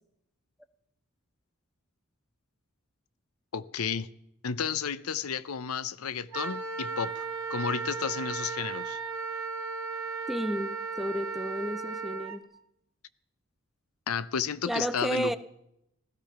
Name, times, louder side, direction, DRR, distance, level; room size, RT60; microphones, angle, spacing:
voice 1, 3.5-4.1 4.4-7.2 7.5-9.0 14.1-15.3, left 6 dB, 85° left, 0.7 m, -32 dB
Wind instrument woodwind instrument, 6.3-12.4, right 4 dB, 85° right, 1.7 m, -35 dB
voice 2, 10.3-12.4 14.7-15.4, equal, ahead, 0.6 m, -32 dB
16.5 x 13.5 x 5.9 m
head